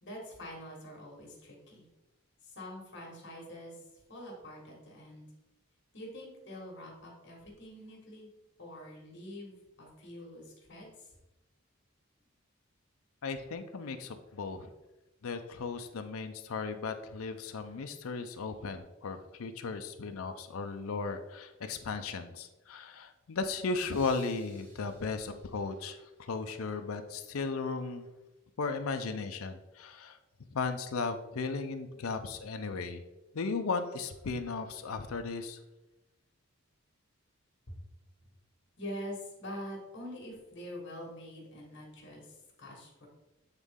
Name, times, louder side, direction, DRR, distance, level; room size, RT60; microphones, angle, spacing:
voice 1, 0.0-1.9 2.4-5.3 5.9-8.3 8.6-11.2 38.8-43.1, equal, 55° left, -1 dB, 1.7 m, -45 dB
voice 2, 13.2-14.7 15.2-28.1 28.6-30.2 30.5-33.0 33.3-35.6, left 4 dB, 85° left, 7 dB, 0.5 m, -36 dB
sound 1, 23.9-26.7, right 3 dB, 70° right, 2.1 m, -60 dB
8.2 x 4.0 x 3.6 m, 1.0 s
head